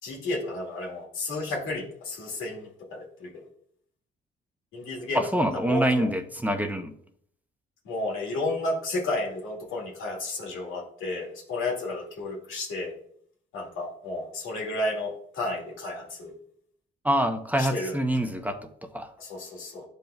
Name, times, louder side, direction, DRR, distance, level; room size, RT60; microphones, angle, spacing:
voice 1, 0.0-3.3 4.7-5.3 5.5-6.1 7.8-12.9 13.5-16.3 17.6-18.0 19.2-19.8, left 2 dB, 85° left, -3 dB, 2.1 m, -32 dB
voice 2, 5.1-6.9 17.0-19.1, right 1 dB, 10° right, 6 dB, 0.7 m, -26 dB
10.5 x 5.3 x 2.3 m, 0.63 s
cardioid pair, 90°, 20 cm